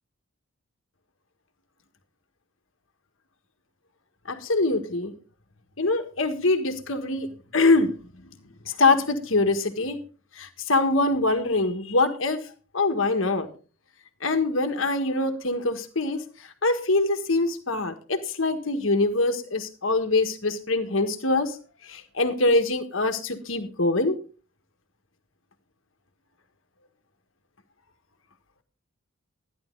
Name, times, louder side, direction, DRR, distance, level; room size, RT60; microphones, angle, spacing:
voice 1, 4.3-5.1 5.8-7.9 8.6-10.0 10.3-12.4 12.7-13.5 14.2-16.2 16.6-21.6 21.8-24.2, left 2 dB, 70° left, 6 dB, 1.5 m, -24 dB
13.0 x 10.5 x 3.8 m, 0.36 s
head